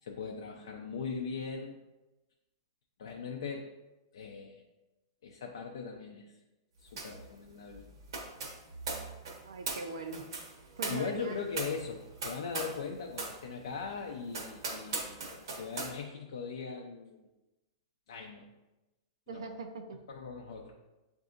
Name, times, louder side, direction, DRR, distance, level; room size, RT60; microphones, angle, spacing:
voice 1, 0.0-1.7 3.0-3.7 4.1-4.6 5.2-6.3 6.8-7.9 10.9-17.2 18.1-18.5 19.3-19.6 20.1-20.7, left 5 dB, 80° left, 0 dB, 0.5 m, -40 dB
sound 1, 7.0-7.2 7.5-12.8 13.1-13.4 13.8-13.9 14.3-15.9, right 3 dB, 65° right, 1.0 m, -39 dB
voice 2, 9.5-10.3 10.8-11.4 19.3-20.0, right 3 dB, 85° right, 5 dB, 0.6 m, -40 dB
7.7 x 2.6 x 2.5 m, 1.0 s
supercardioid pair, 180°, 3 cm